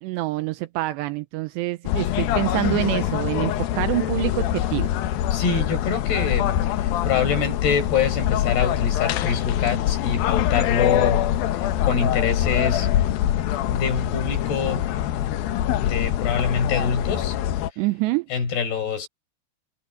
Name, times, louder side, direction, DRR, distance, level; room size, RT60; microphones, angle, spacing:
voice 1, 0.0-4.9 17.8-18.3, right 18 dB, 85° right, 2.5 m, -26 dB
sound 1, 1.9-17.7, left 12 dB, 80° left, 2.1 m, -24 dB
voice 2, 5.3-11.2 11.5-12.9 13.7-14.9 15.8-17.4 18.3-19.1, left 6 dB, 55° left, 6.7 m, -25 dB
omnidirectional pair, 5.5 m